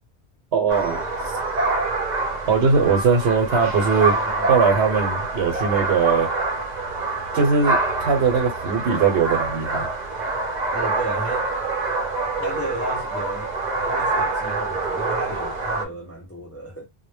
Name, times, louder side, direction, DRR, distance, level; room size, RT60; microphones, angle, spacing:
voice 1, 0.5-1.0 2.5-4.2 4.5-6.3 7.3-9.9, right 5 dB, 80° right, 1.0 m, -20 dB
sound 1, 0.7-15.8, right 3 dB, 50° right, 0.6 m, -26 dB
voice 2, 4.1-4.5 10.7-11.5 12.4-16.9, right 1 dB, 25° left, 0.3 m, -33 dB
2.1 x 2.1 x 3.1 m
omnidirectional pair, 1.1 m